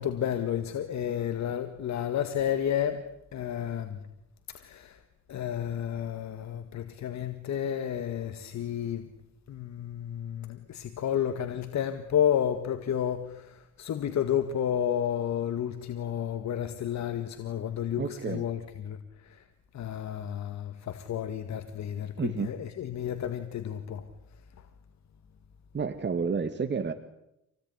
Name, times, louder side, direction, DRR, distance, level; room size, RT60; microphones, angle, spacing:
voice 1, 0.0-4.0 4.5-5.0 5.3-9.1 9.5-19.4 19.7-24.1, left 9 dB, 65° left, 1.9 m, -31 dB
voice 2, 18.0-18.4 22.2-22.5 25.7-26.9, right 5 dB, 35° right, 2.0 m, -30 dB
27.5 x 18.5 x 9.8 m
cardioid pair, 90°, 30 cm